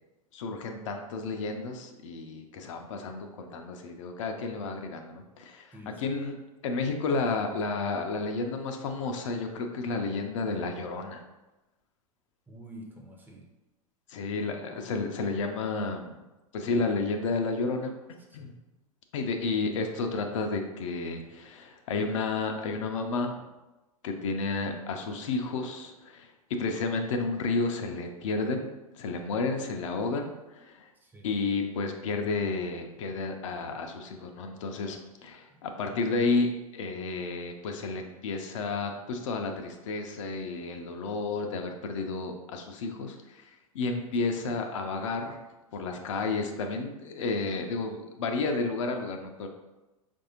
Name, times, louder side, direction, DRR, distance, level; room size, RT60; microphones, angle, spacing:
voice 1, 0.3-6.4 6.6-11.2 14.1-16.2 16.5-17.9 18.3-18.5 19.1-23.5 24.0-26.3 26.6-28.7 28.9-30.9 31.2-45.4 45.7-49.5, left 3 dB, 60° left, 4 dB, 0.5 m, -31 dB
voice 2, 5.7-6.0 12.5-13.5 18.3-18.6 30.9-31.3 35.3-35.7, right 1 dB, 10° right, 1 dB, 0.6 m, -49 dB
4.6 x 2.6 x 2.8 m, 1.1 s
figure-of-eight pair, 90°, 19 cm